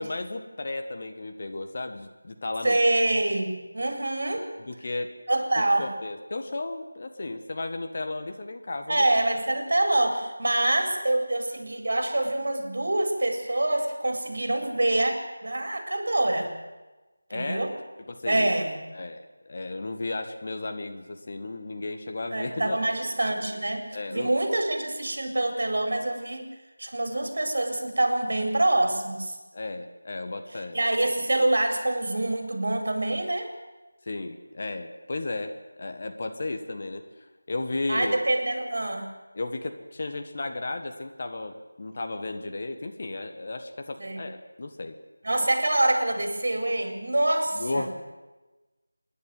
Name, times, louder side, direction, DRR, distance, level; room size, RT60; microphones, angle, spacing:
voice 1, 0.0-2.8 4.6-5.2 5.6-9.1 17.3-17.6 18.0-18.5 18.9-22.8 23.9-24.3 29.5-30.8 34.0-37.0 37.5-38.2 39.3-45.0 47.5-48.0, left 2 dB, 40° left, 6 dB, 1.7 m, -34 dB
voice 2, 2.6-4.5 5.3-5.9 8.9-16.5 17.3-17.7 18.3-18.8 22.3-26.5 26.8-29.4 30.7-33.5 37.9-39.1 44.0-44.2 45.2-47.9, right 1 dB, 60° right, 5 dB, 4.3 m, -26 dB
27.0 x 10.5 x 9.5 m, 1.2 s
figure-of-eight pair, 170°, 0 cm